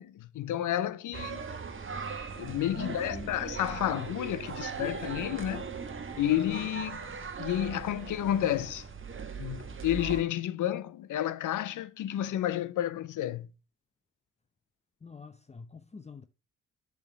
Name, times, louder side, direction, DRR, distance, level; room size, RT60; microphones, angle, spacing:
voice 1, 0.0-1.4 2.1-5.7 6.2-7.1 7.4-8.9 9.4-13.5, left 12 dB, 70° left, 0.7 m, -31 dB
sound 1, 1.1-10.2, right 5 dB, 40° right, 1.2 m, -39 dB
voice 2, 2.7-3.3 15.0-16.2, left 4 dB, 20° left, 0.6 m, -44 dB
7.1 x 3.6 x 5.8 m
supercardioid pair, 55°, 32 cm